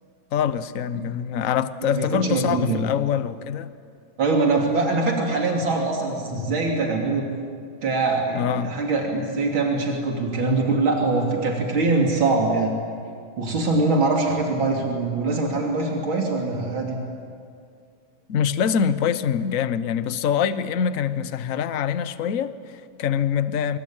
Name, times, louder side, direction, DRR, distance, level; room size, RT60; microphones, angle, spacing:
voice 1, 0.3-3.7 8.3-8.7 18.3-23.8, left 8 dB, 50° left, 1.1 m, -24 dB
voice 2, 1.8-2.8 4.2-7.3 7.8-12.7 13.4-17.0, right 3 dB, 90° right, 3.7 m, -23 dB
25.0 x 23.5 x 8.8 m
omnidirectional pair, 2.1 m